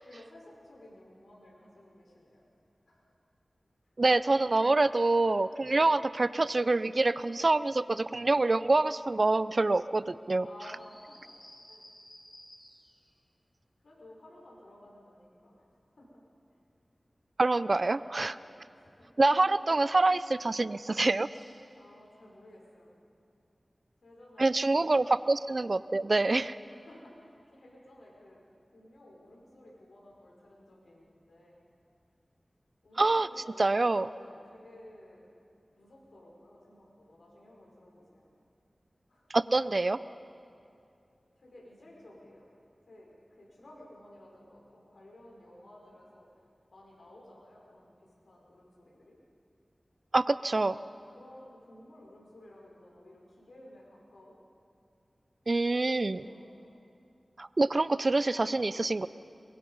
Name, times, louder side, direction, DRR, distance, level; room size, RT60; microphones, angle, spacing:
voice 1, 0.0-2.5 2.9-3.1 3.8-3.9 7.2-7.6 10.4-11.3 11.7-11.8 13.8-15.6 15.9-16.1 16.5-16.6 18.2-19.1 21.7-23.0 24.0-25.1 26.7-28.4 28.6-31.6 32.8-33.7 34.1-35.4 35.7-38.3 39.1-39.3 41.3-42.5 42.9-46.3 46.7-49.2 50.4-50.7 51.1-54.4 55.6-56.7, left 1 dB, 85° left, -3 dB, 5.1 m, -54 dB
voice 2, 4.0-10.5 17.4-18.3 19.2-21.3 24.4-26.6 33.0-33.3 33.6-34.1 39.3-40.0 50.1-50.8 55.5-56.2 57.4-59.1, right 2 dB, 55° right, 16 dB, 0.5 m, -26 dB
sound 1, 10.8-13.0 21.0-21.7, left 1 dB, 30° left, 5.8 m, -54 dB
23.0 x 22.5 x 5.5 m, 2.5 s
cardioid pair, 45°, 0 cm